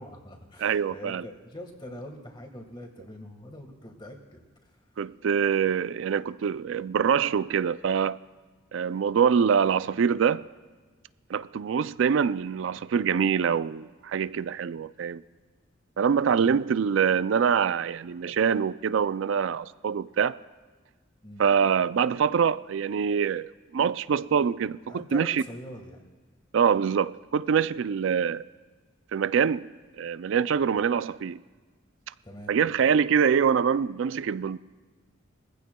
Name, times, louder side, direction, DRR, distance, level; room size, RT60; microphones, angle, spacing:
voice 1, 0.0-4.8 16.4-16.6 21.2-21.4 24.9-26.0 32.2-32.6, left 1 dB, 25° left, 1.5 m, -43 dB
voice 2, 0.6-1.2 5.0-8.2 8.7-10.4 11.3-15.2 16.0-20.4 21.4-25.4 26.5-28.4 29.1-29.7 30.0-31.4 32.5-34.6, right 7 dB, 75° right, 0.3 m, -25 dB
21.5 x 15.0 x 2.3 m
head